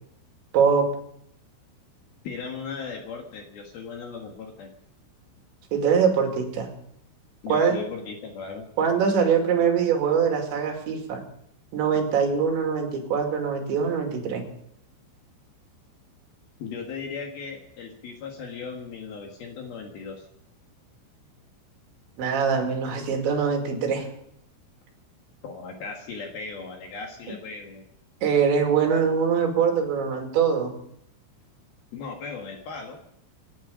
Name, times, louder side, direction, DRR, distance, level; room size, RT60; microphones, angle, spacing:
voice 1, 0.5-0.9 5.7-6.7 7.5-7.8 8.8-11.2 11.7-14.5 22.2-24.1 28.2-30.7, right 6 dB, 65° right, 2 dB, 4.4 m, -23 dB
voice 2, 2.2-4.7 7.4-8.7 16.6-20.3 25.4-27.8 31.9-33.0, left 5 dB, 60° left, 2 dB, 2.9 m, -37 dB
26.5 x 10.5 x 5.1 m, 0.74 s
omnidirectional pair, 5.8 m